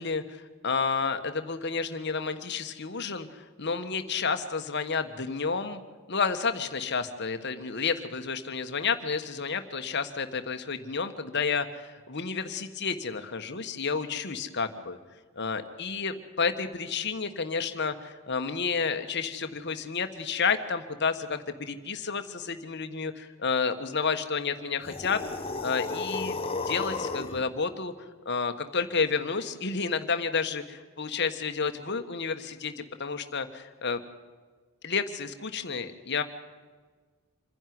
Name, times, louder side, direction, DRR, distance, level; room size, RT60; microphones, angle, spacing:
voice 1, 0.0-5.8 6.1-15.0 15.4-25.2 25.6-27.9 28.2-34.0 34.8-36.2, left 5 dB, 50° left, 8 dB, 1.4 m, -30 dB
sound 1, 24.8-27.4, left 3 dB, 25° left, 1.1 m, -33 dB
26.5 x 11.0 x 9.5 m, 1.5 s
head